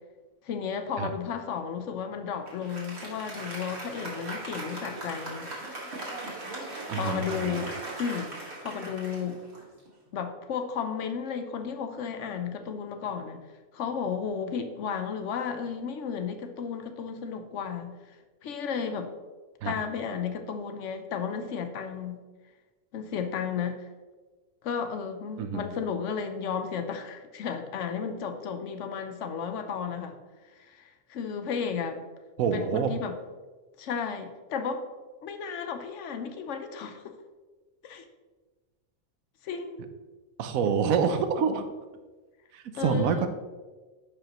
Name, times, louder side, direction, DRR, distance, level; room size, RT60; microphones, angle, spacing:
voice 1, 0.4-5.5 6.6-7.7 8.0-8.3 8.6-9.4 10.1-13.4 13.7-18.2 18.4-19.1 19.6-22.2 22.9-23.9 24.6-30.2 30.6-32.0 32.5-33.1 33.8-34.8 35.2-37.2 37.8-38.1 39.4-39.8 40.7-40.9 42.7-43.3, left 6 dB, 60° left, 7 dB, 1.0 m, -33 dB
Applause, 2.5-10.1, right 2 dB, 45° right, 1.9 m, -39 dB
voice 2, 6.9-7.7 19.6-19.7 25.4-25.6 32.4-32.9 40.4-41.7 42.5-43.3, right 6 dB, 75° right, 9 dB, 1.1 m, -27 dB
10.0 x 5.2 x 3.0 m, 1.3 s
omnidirectional pair, 1.5 m